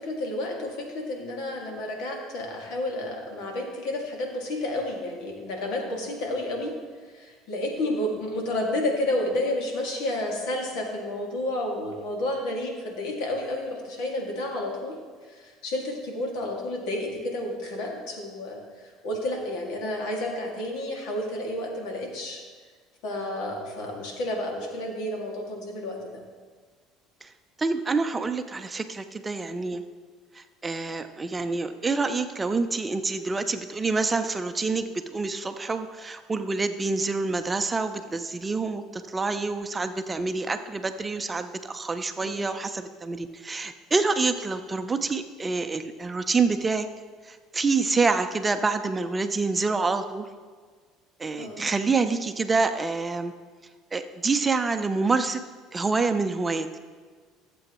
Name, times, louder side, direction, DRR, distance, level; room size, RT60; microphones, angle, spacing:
voice 1, 0.0-6.7 7.1-15.0 15.3-18.6 19.0-22.4 23.0-26.2 42.2-42.5 51.3-51.7, left 1 dB, 75° left, 0 dB, 2.2 m, -31 dB
voice 2, 27.6-29.8 30.3-46.9 47.2-50.3 51.2-53.3 53.9-55.4 55.7-56.7, right 4 dB, 20° right, 8 dB, 0.6 m, -27 dB
15.0 x 7.8 x 3.1 m, 1.5 s
supercardioid pair, 100°, 0 cm